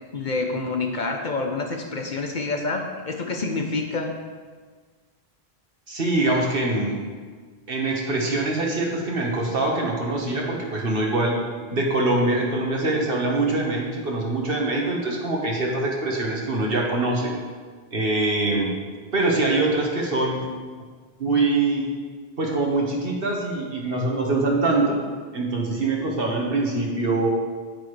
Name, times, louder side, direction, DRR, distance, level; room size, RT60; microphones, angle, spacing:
voice 1, 0.1-4.1, left 3 dB, 50° left, 3 dB, 0.9 m, -27 dB
voice 2, 5.9-7.0 7.7-11.4 11.7-17.3 17.9-18.7 19.1-20.5 21.2-21.9 22.4-25.0 25.3-27.3, right 2 dB, 60° right, -1 dB, 1.6 m, -23 dB
9.5 x 9.1 x 3.2 m, 1.5 s
omnidirectional pair, 1.1 m